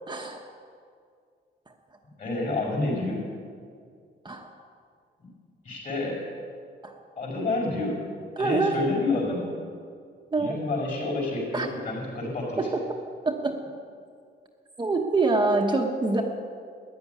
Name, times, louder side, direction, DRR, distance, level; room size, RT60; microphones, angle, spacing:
voice 1, 0.1-0.5 1.7-1.8 4.2-4.5 6.8-7.0 8.4-8.8 10.3-10.6 11.5-11.7 12.6-12.8 13.2-13.6 14.8-16.2, right 3 dB, 25° right, 1 dB, 1.1 m, -25 dB
voice 2, 2.2-3.3 5.2-5.3 5.6-6.2 7.2-8.0 8.4-9.5 10.4-12.6, left 2 dB, 40° left, -2 dB, 5.4 m, -29 dB
14.0 x 10.5 x 9.4 m, 2.2 s
wide cardioid pair, 170°, 19 cm